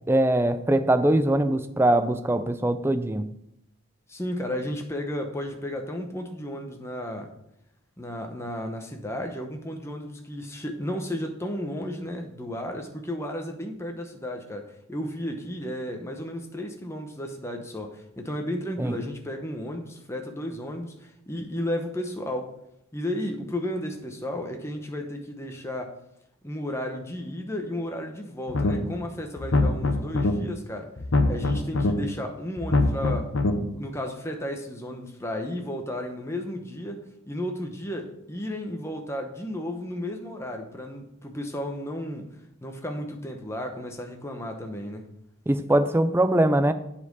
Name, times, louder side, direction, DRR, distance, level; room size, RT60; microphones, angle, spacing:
voice 1, 0.1-3.3 18.8-18.9 45.5-46.7, right 1 dB, 10° right, 10 dB, 0.4 m, -22 dB
voice 2, 4.1-7.3 8.0-22.5 22.9-26.0 26.4-30.9 31.2-33.3 33.7-42.3 42.6-45.1, left 1 dB, 15° left, 4 dB, 0.8 m, -33 dB
sound 1, 28.5-29.0 29.4-30.3 31.0-31.9 32.6-33.5, left 2 dB, 70° left, 0.8 m, -23 dB
7.5 x 4.3 x 6.8 m, 0.78 s
head